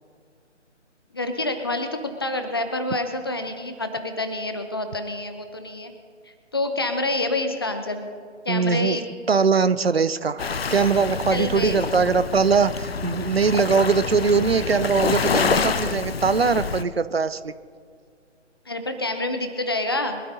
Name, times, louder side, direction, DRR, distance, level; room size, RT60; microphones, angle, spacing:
voice 1, 1.1-5.9 6.5-8.1 8.5-9.0 11.3-11.8 18.7-20.2, left 2 dB, 20° left, 7 dB, 0.6 m, -27 dB
voice 2, 8.5-9.0 9.3-17.5, right 5 dB, 55° right, 15 dB, 0.6 m, -21 dB
Waves surf, 10.4-16.8, left 5 dB, 55° left, 0.7 m, -27 dB
23.5 x 13.0 x 2.7 m, 2.1 s
figure-of-eight pair, 145°, 37 cm